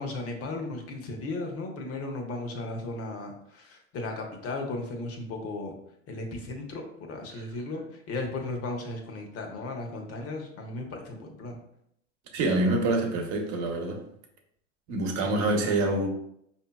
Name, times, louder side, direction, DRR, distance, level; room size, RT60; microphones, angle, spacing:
voice 1, 0.0-5.7 6.1-7.8 8.1-11.6 15.1-15.7, left 2 dB, 40° left, 2 dB, 1.0 m, -36 dB
voice 2, 12.3-14.0 14.9-16.1, right 2 dB, 45° right, 2 dB, 1.0 m, -26 dB
4.9 x 2.8 x 2.3 m, 0.73 s
hypercardioid pair, 100°, 38 cm